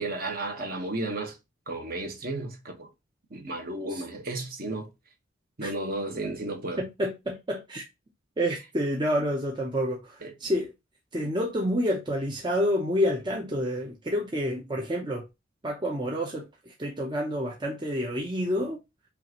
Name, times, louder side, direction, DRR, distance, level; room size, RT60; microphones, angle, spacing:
voice 1, 0.0-1.4 1.7-2.9 3.3-4.9 5.6-6.8 10.2-10.3, right 2 dB, 45° right, 1.1 m, -33 dB
voice 2, 6.8-7.8 8.4-10.7 11.1-15.3 15.6-18.8, equal, 20° right, 0.7 m, -28 dB
5.6 x 2.5 x 2.8 m
head